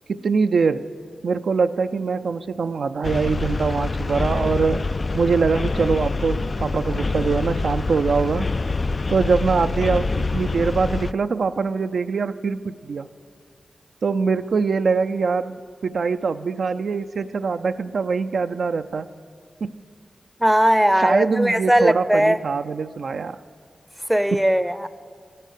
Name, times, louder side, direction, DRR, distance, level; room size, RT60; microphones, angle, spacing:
voice 1, 0.1-0.9 1.2-4.8 5.1-8.5 9.1-13.1 14.0-19.1 19.6-19.8 21.0-23.4 24.3-24.4, right 5 dB, 80° right, 0.4 m, -23 dB
sound 1, 3.0-11.1, left 3 dB, 50° left, 0.3 m, -25 dB
voice 2, 20.4-22.4 24.1-24.9, equal, 5° right, 0.6 m, -18 dB
14.0 x 11.0 x 8.2 m
cardioid pair, 50°, 0 cm